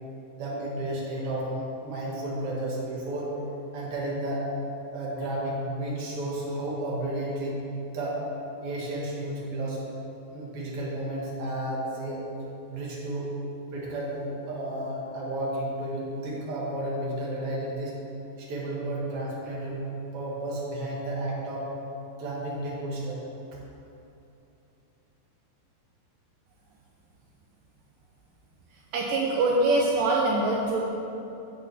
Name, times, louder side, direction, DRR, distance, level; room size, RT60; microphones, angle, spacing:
voice 1, 0.4-3.3 3.7-4.5 4.9-8.2 8.6-9.8 10.3-12.2 12.7-13.3 13.7-18.0 18.4-19.8 20.1-21.7 22.2-23.2, right 1 dB, 45° right, -5 dB, 2.0 m, -32 dB
voice 2, 28.9-30.8, right 2 dB, 85° right, -2 dB, 1.9 m, -23 dB
17.0 x 6.0 x 3.5 m, 2.9 s
omnidirectional pair, 4.9 m